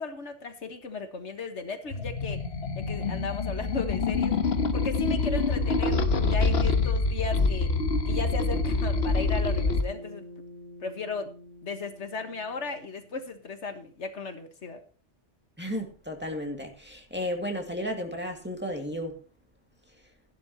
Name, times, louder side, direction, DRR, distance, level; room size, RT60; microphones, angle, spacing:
voice 1, 0.0-2.4 2.8-4.4 4.7-7.7 8.1-10.3 10.8-11.3 11.6-14.8, left 4 dB, 85° left, 7 dB, 1.8 m, -36 dB
sound 1, 1.9-9.8, left 3 dB, 65° left, 1.4 m, -26 dB
Bass guitar, 9.5-13.9, equal, 35° right, 3.1 m, -48 dB
voice 2, 15.6-19.2, equal, 10° right, 1 dB, 2.0 m, -33 dB
15.0 x 11.5 x 3.0 m, 0.37 s
omnidirectional pair, 1.2 m